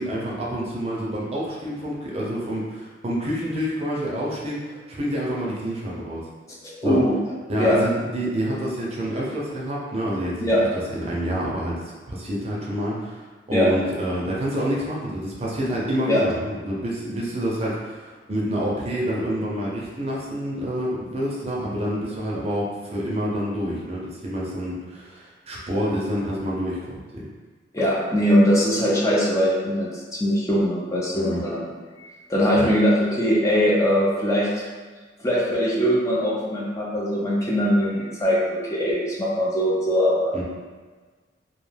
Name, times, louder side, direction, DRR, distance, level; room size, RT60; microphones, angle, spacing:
voice 1, 0.0-6.2 6.8-7.0 7.5-10.5 10.9-13.2 13.5-27.2 31.1-31.4 32.5-32.7 40.3-40.4, equal, 35° right, -5 dB, 0.5 m, -28 dB
voice 2, 6.7-7.2 7.6-7.8 10.4-10.6 13.5-13.7 16.1-16.2 27.7-29.9 30.2-31.7 32.0-34.5 35.2-40.3, equal, 20° left, -6 dB, 0.4 m, -21 dB
2.3 x 2.2 x 3.2 m, 1.4 s
head